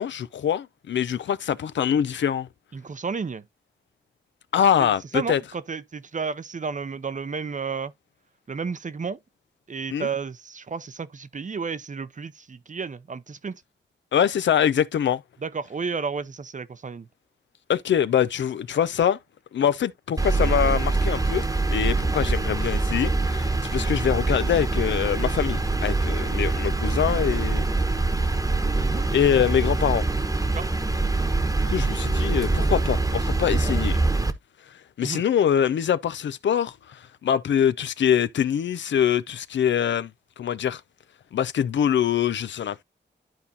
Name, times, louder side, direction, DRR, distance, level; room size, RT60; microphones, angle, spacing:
voice 1, 0.0-2.5 4.5-5.4 9.9-10.1 14.1-15.2 17.7-19.2 19.5-27.6 29.1-30.0 31.6-34.0 35.0-40.1 40.4-40.8 41.3-42.8, left 9 dB, 85° left, 0.5 m, -24 dB
voice 2, 2.7-3.4 4.8-7.9 8.5-9.2 9.7-13.6 15.4-17.1 28.8-29.1 30.5-30.7 35.0-35.2, right 5 dB, 45° right, 0.6 m, -32 dB
sound 1, 20.2-34.3, right 3 dB, 20° right, 1.0 m, -24 dB
12.0 x 4.2 x 2.7 m
cardioid pair, 55°, 18 cm